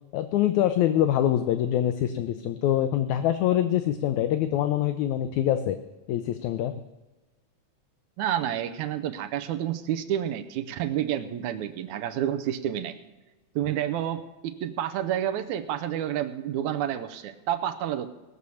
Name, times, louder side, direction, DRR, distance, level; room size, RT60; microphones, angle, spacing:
voice 1, 0.1-5.8 6.1-6.7, left 11 dB, 80° left, 10 dB, 1.9 m, -24 dB
voice 2, 8.2-13.0 13.6-18.1, right 11 dB, 75° right, 8 dB, 2.0 m, -29 dB
19.0 x 6.4 x 7.0 m, 1.1 s
omnidirectional pair, 3.6 m